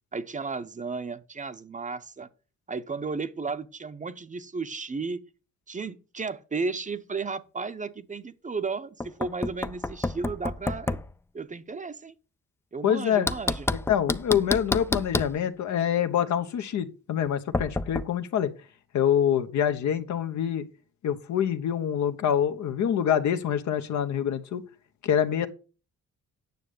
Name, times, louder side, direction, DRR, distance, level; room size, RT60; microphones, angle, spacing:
voice 1, 0.1-2.3 2.7-5.2 5.7-11.0 11.3-12.1 12.7-13.7, right 4 dB, 25° right, 0.8 m, -34 dB
Knock, 9.0-11.1 13.3-15.4 17.5-18.1, left 2 dB, 10° left, 0.4 m, -29 dB
voice 2, 12.8-13.3 13.9-18.5 18.9-20.6 21.0-24.6 25.0-25.5, left 9 dB, 70° left, 1.1 m, -25 dB
9.5 x 6.6 x 5.1 m
cardioid pair, 90°, 30 cm